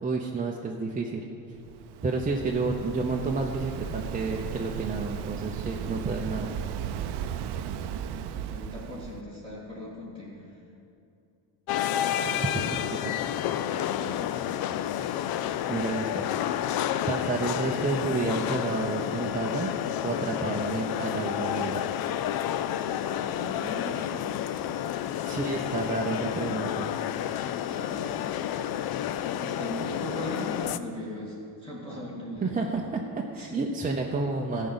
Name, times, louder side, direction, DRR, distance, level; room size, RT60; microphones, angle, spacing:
voice 1, 0.0-1.2 2.0-6.5 12.2-13.2 15.7-16.3 17.1-19.8 20.0-21.8 25.2-26.9 32.4-34.7, right 3 dB, 15° right, -1 dB, 0.7 m, -30 dB
Waves surf, 1.5-9.2, right 8 dB, 60° right, 0.7 m, -35 dB
voice 2, 8.3-10.6 13.8-14.3 23.0-24.4 27.7-28.4 29.3-32.7 33.4-33.6, left 1 dB, 10° left, -8 dB, 2.2 m, -39 dB
sound 1, 11.7-30.8, left 11 dB, 50° left, 0.5 m, -30 dB
13.5 x 5.4 x 7.9 m, 2.6 s
cardioid pair, 110°, 47 cm